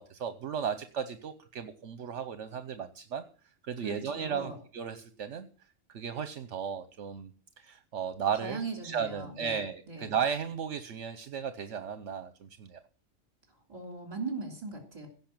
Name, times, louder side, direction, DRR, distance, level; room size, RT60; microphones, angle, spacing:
voice 1, 0.0-3.2 3.6-5.5 5.9-7.3 7.6-12.8, right 7 dB, 70° right, 11 dB, 1.1 m, -35 dB
voice 2, 3.8-4.6 8.4-9.6 9.9-10.1 13.7-15.1, right 3 dB, 30° right, 3 dB, 3.2 m, -39 dB
16.5 x 5.7 x 8.8 m, 0.41 s
omnidirectional pair, 1.3 m